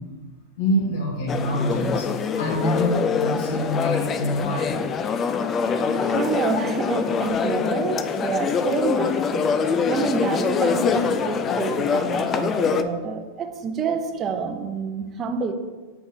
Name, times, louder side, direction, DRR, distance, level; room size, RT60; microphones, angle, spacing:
voice 1, 0.6-5.0, equal, 75° left, -5 dB, 1.4 m, -26 dB
sound 1, 1.3-12.8, left 6 dB, 30° left, 0.4 m, -24 dB
voice 2, 6.0-9.5 9.9-15.5, right 4 dB, 30° right, 7 dB, 0.6 m, -28 dB
6.9 x 4.9 x 2.8 m, 1.3 s
hypercardioid pair, 120°, 0 cm